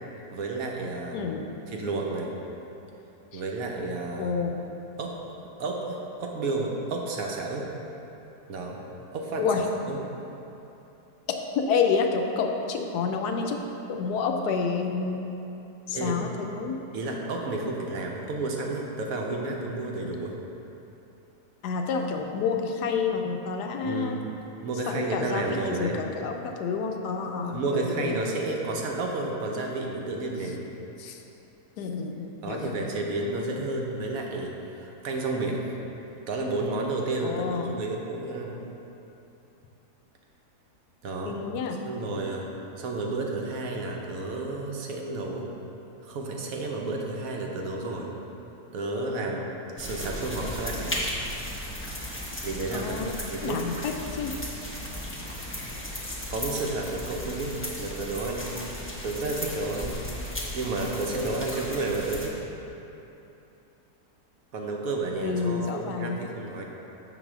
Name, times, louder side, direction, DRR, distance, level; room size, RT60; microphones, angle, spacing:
voice 1, 0.3-1.2 1.7-2.3 3.3-4.3 5.0-5.2 5.6-7.7 8.5-8.8 9.1-9.4 9.9-10.0 15.9-16.2 16.9-20.4 23.8-24.3 24.6-26.0 27.5-30.7 32.4-35.6 36.3-38.6 41.0-41.4 41.9-42.5 42.8-45.5 46.0-48.1 48.7-49.5 49.8-51.1 52.4-53.6 55.5-55.6 56.3-57.5 57.8-58.6 59.0-60.0 60.3-62.4 64.5-66.6, right 2 dB, 65° right, 0 dB, 1.1 m, -31 dB
voice 2, 4.2-4.6 9.4-9.6 11.3-13.6 13.9-15.3 15.9-16.8 21.6-24.2 24.9-28.1 31.0-31.2 31.8-32.8 37.2-37.7 41.2-41.8 52.7-53.2 53.4-54.3 65.2-66.2, left 5 dB, 80° left, 3 dB, 1.1 m, -29 dB
sound 1, 49.8-62.3, left 1 dB, 15° left, 0.4 m, -36 dB
6.9 x 4.0 x 6.0 m, 2.9 s
omnidirectional pair, 1.7 m